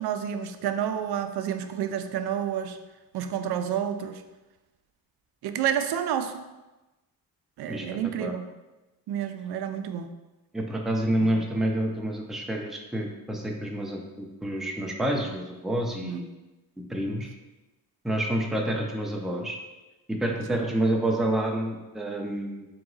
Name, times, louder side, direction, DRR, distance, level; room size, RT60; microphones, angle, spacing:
voice 1, 0.0-2.8 3.1-4.2 5.4-6.4 7.6-8.5 9.1-10.1 11.2-11.3 16.0-16.2 20.5-20.6, right 9 dB, 75° right, 8 dB, 0.5 m, -29 dB
voice 2, 10.5-16.3 16.9-17.3 18.0-19.6 20.1-22.7, right 1 dB, ahead, 0 dB, 0.5 m, -28 dB
3.8 x 3.1 x 3.8 m, 1.1 s
cardioid pair, 110°, 39 cm